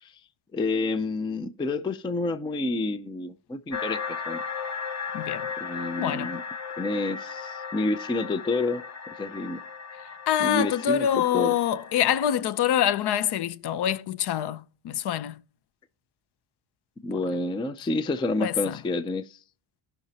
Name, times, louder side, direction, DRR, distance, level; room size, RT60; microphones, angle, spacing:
voice 1, 0.5-4.4 5.6-6.4 6.8-9.6 10.4-11.6 17.0-19.4, left 2 dB, 10° left, 0.3 m, -29 dB
sound 1, 3.7-12.3, left 6 dB, 35° left, 1.2 m, -36 dB
voice 2, 5.1-5.5 6.0-6.3 10.3-15.4 18.4-18.8, left 10 dB, 55° left, 0.6 m, -25 dB
17.5 x 5.9 x 2.8 m
cardioid pair, 160°, 47 cm